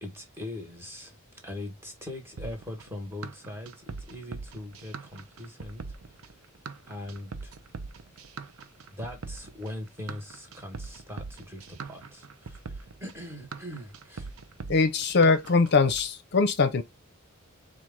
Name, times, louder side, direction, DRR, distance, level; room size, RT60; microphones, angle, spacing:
voice 1, 0.0-1.2 1.4-5.8 6.1-6.2 6.9-7.5 8.9-14.3, left 1 dB, 10° right, 1.3 m, -41 dB
sound 1, 2.4-16.0, right 4 dB, 80° right, 0.6 m, -41 dB
voice 2, 14.7-16.8, left 4 dB, 50° left, 0.6 m, -22 dB
4.6 x 2.4 x 3.5 m
head